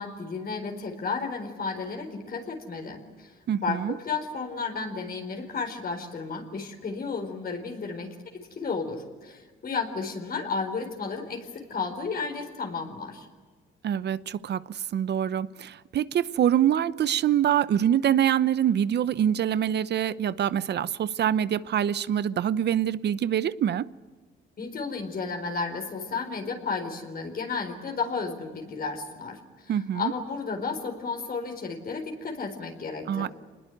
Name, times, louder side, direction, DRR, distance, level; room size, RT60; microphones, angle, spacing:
voice 1, 0.0-3.3 3.6-13.3 24.6-33.3, left 4 dB, 50° left, 4 dB, 4.4 m, -33 dB
voice 2, 3.5-3.9 13.8-23.9 29.7-30.1 33.1-33.3, right 10 dB, 60° right, 17 dB, 0.8 m, -25 dB
26.0 x 20.5 x 9.3 m, 1.4 s
cardioid pair, 90°, 20 cm